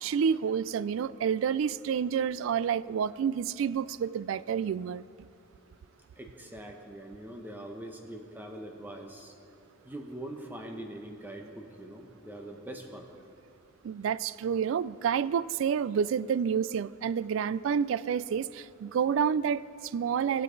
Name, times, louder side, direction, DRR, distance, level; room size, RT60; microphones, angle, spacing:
voice 1, 0.0-5.0 13.8-20.4, right 7 dB, 65° right, 18 dB, 0.3 m, -29 dB
voice 2, 6.2-9.3 9.8-13.1, right 1 dB, 10° right, 3 dB, 1.0 m, -43 dB
19.5 x 7.7 x 3.9 m, 2.5 s
head